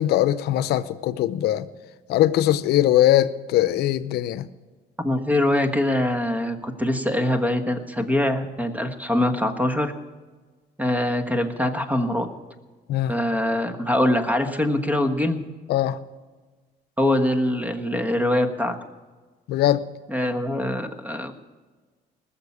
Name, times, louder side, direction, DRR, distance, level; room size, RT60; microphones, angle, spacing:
voice 1, 0.0-1.7 2.1-4.5 12.9-13.1 15.7-16.0 19.5-19.8, left 13 dB, 75° left, 0.7 m, -21 dB
voice 2, 5.0-9.9 10.8-12.3 13.1-15.4 17.0-18.8 20.1-21.3, left 1 dB, 10° right, 1.4 m, -23 dB
19.5 x 7.2 x 8.5 m
cardioid pair, 110°, 17 cm